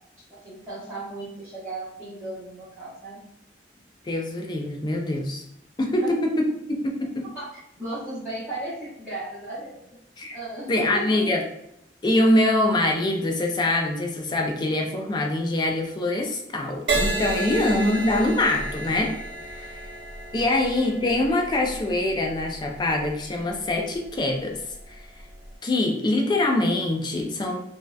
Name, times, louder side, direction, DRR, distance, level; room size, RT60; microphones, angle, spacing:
voice 1, 0.3-3.2 6.0-6.1 7.3-9.8 10.3-11.3 17.4-17.5 19.5-19.8 20.4-20.5, right 2 dB, 5° right, -15 dB, 0.8 m, -36 dB
voice 2, 4.0-5.4 5.8-7.3 10.2-10.4 10.7-11.4 12.0-19.1 19.4-19.9 20.3-24.6 24.9-25.1 25.6-27.6, left 1 dB, 25° left, 2 dB, 0.4 m, -24 dB
Crash cymbal, 16.9-24.5 25.2-25.5, right 2 dB, 80° right, 0.7 m, -32 dB
2.6 x 2.1 x 2.3 m, 0.78 s
head